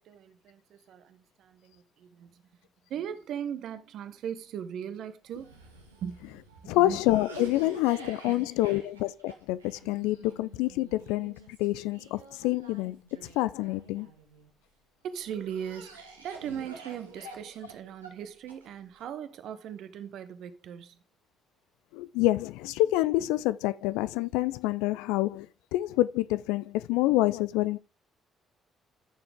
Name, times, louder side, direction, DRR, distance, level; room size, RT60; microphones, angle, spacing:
voice 1, 0.0-2.4 2.9-5.6 6.0-6.2 6.6-7.0 8.2-8.8 15.0-21.0, right 9 dB, 60° right, 1.1 m, -39 dB
Cough, 5.3-14.5 15.1-19.0, right 4 dB, 90° right, 1.6 m, -49 dB
voice 2, 6.7-13.0 13.3-14.1 21.9-25.5 25.7-27.8, left 17 dB, 70° left, 0.4 m, -27 dB
13.5 x 7.0 x 3.6 m
figure-of-eight pair, 45°, 0 cm